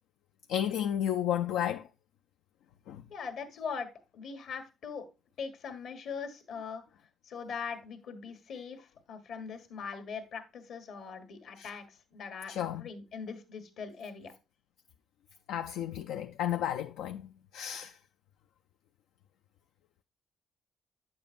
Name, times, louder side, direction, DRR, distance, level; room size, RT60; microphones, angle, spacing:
voice 1, 0.5-1.9 2.9-3.0 11.6-11.7 12.5-12.8 15.5-18.0, left 10 dB, 90° left, 0.3 m, -32 dB
voice 2, 3.1-3.9 4.1-5.1 5.4-6.8 7.2-14.3, left 6 dB, 70° left, 1.4 m, -41 dB
8.7 x 7.0 x 2.5 m
cardioid pair, 90°, 0 cm